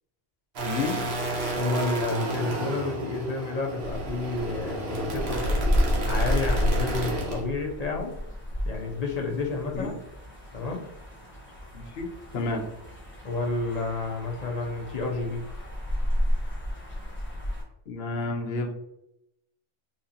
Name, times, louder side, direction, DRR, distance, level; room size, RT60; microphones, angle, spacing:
voice 1, 0.6-1.1 9.7-10.0 11.7-12.1 12.3-12.7 17.9-18.9, left 3 dB, 60° left, 2 dB, 0.9 m, -31 dB
sound 1, 0.6-7.4, right 2 dB, 60° right, 1.1 m, -32 dB
voice 2, 1.6-5.7 6.0-8.1 8.7-10.0 10.5-10.8 13.2-15.4, left 3 dB, 40° left, 0 dB, 0.7 m, -30 dB
sound 2, 3.8-17.6, equal, 10° left, 0.9 m, -31 dB
4.2 x 2.9 x 2.6 m, 0.80 s
omnidirectional pair, 1.2 m